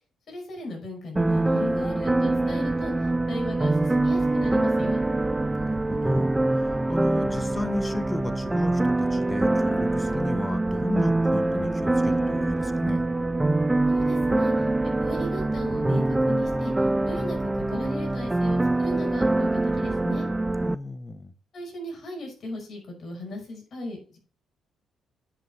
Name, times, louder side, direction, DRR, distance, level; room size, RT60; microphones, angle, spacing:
voice 1, 0.3-2.9 3.3-5.0 13.9-14.5 15.0-16.7 17.0-20.3 21.5-24.2, left 1 dB, 55° left, 1 dB, 5.5 m, -36 dB
sound 1, 1.2-20.8, right 2 dB, 15° right, 0.5 m, -24 dB
voice 2, 5.5-13.0 20.6-21.3, left 2 dB, 15° left, 10 dB, 1.2 m, -34 dB
9.9 x 6.5 x 4.4 m, 0.40 s
cardioid pair, 90°, 0 cm